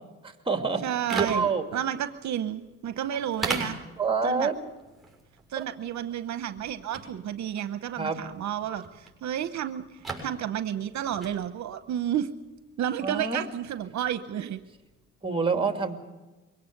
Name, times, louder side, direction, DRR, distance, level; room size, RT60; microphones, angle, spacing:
voice 1, 0.2-0.8 1.1-1.6 4.0-4.6 5.6-5.7 8.0-8.2 13.0-13.4 15.2-16.0, right 4 dB, 15° right, 5 dB, 2.5 m, -27 dB
voice 2, 0.8-3.8 4.2-4.5 5.5-12.3 12.8-14.6, right 10 dB, 65° right, 11 dB, 0.9 m, -31 dB
sound 1, 1.1-15.0, right 3 dB, ahead, 6.9 m, -41 dB
23.0 x 17.5 x 6.7 m, 1.2 s
cardioid pair, 90°, 30 cm